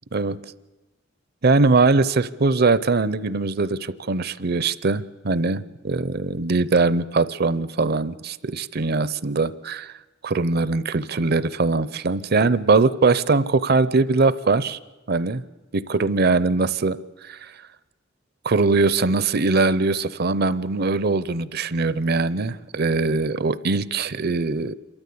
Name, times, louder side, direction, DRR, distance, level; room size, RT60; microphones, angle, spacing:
voice 1, 1.4-9.9 10.2-14.8 15.1-15.4 15.7-17.5 18.4-24.7, right 3 dB, 55° right, 17 dB, 0.7 m, -21 dB
27.0 x 13.5 x 8.5 m, 1.2 s
head